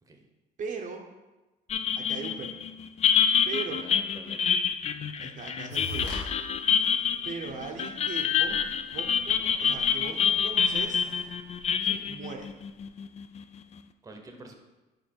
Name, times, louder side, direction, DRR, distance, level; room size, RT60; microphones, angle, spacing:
voice 1, 0.6-1.0 1.9-2.5 3.5-3.8 5.1-6.2 7.2-8.7 8.9-11.1 12.1-12.5, right 5 dB, 50° right, 2 dB, 0.7 m, -39 dB
sound 1, 1.7-13.4, left 7 dB, 40° left, 0.4 m, -27 dB
voice 2, 3.8-4.5 11.8-12.0 14.0-14.5, right 2 dB, 20° right, 4 dB, 0.8 m, -47 dB
sound 2, 5.7-6.2 6.7-6.9 7.5-7.6 7.9-8.0 8.3-12.0, equal, 90° left, 1.5 m, -42 dB
5.3 x 4.6 x 4.4 m, 1.1 s
cardioid pair, 105°, 17 cm